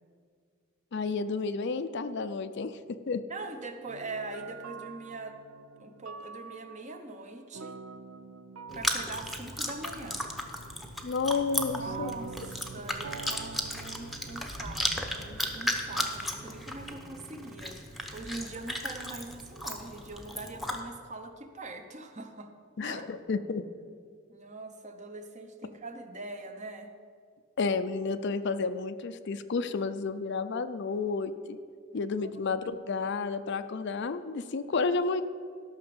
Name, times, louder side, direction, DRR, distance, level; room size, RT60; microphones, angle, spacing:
voice 1, 0.9-3.2 11.0-12.1 22.8-23.7 27.6-31.6 31.9-35.2, left 4 dB, 55° left, 11 dB, 0.5 m, -31 dB
voice 2, 3.3-5.4 5.8-7.8 8.7-10.3 11.7-22.5 22.8-23.0 24.3-26.9 31.9-32.5, right 3 dB, 35° right, 6 dB, 0.9 m, -42 dB
sound 1, 3.9-17.2, right 5 dB, 85° right, 0.5 m, -47 dB
Chewing mastication, 8.7-20.8, left 1 dB, ahead, 0.8 m, -35 dB
13.0 x 6.0 x 7.0 m, 2.1 s
head